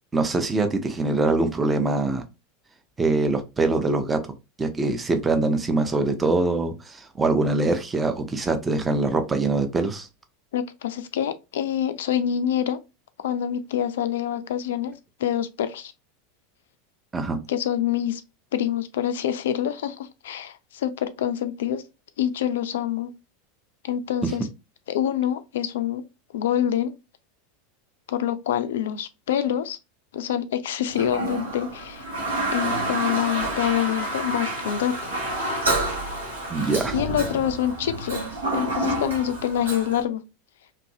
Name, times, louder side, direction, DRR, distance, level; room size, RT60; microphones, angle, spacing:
voice 1, 0.1-2.2 3.0-4.2 4.6-10.1 17.1-17.4 24.2-24.3 36.5-37.0, right 3 dB, 15° right, 0.6 m, -23 dB
voice 2, 10.5-12.8 13.2-14.9 15.2-15.9 17.5-18.2 18.5-21.8 22.2-23.1 23.8-24.5 24.9-26.0 26.3-26.9 28.1-29.8 30.1-32.0 32.5-34.9 36.9-38.2 38.5-40.2, left 10 dB, 65° left, 0.3 m, -26 dB
Toilet flush, 30.9-40.0, right 1 dB, 75° right, 1.0 m, -28 dB
2.9 x 2.6 x 2.6 m
figure-of-eight pair, 80°, 0 cm